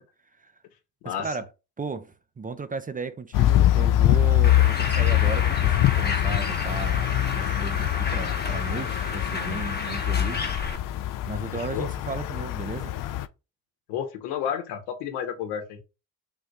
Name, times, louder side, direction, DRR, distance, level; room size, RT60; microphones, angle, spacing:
voice 1, 1.0-1.4 1.8-10.4 11.2-12.9, right 4 dB, 20° right, 0.5 m, -35 dB
sound 1, 3.3-13.3, left 13 dB, 55° left, 0.5 m, -24 dB
Bird, 4.4-10.8, left 4 dB, 25° left, 0.9 m, -31 dB
voice 2, 11.5-11.9 13.9-15.8, left 8 dB, 75° left, 1.0 m, -31 dB
3.7 x 2.6 x 4.5 m
hypercardioid pair, 60°, 40 cm